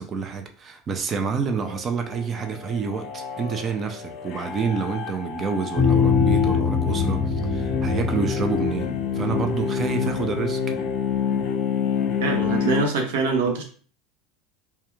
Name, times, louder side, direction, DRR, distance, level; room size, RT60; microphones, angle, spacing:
voice 1, 0.0-10.6, right 5 dB, 30° right, 5 dB, 0.5 m, -28 dB
sound 1, 1.5-12.8, left 7 dB, 50° left, 0.4 m, -29 dB
sound 2, 5.7-10.2, left 6 dB, 10° left, 0.8 m, -23 dB
voice 2, 12.2-13.6, right 4 dB, 85° right, 2 dB, 0.7 m, -24 dB
2.3 x 2.2 x 3.0 m, 0.43 s
supercardioid pair, 115°, 0 cm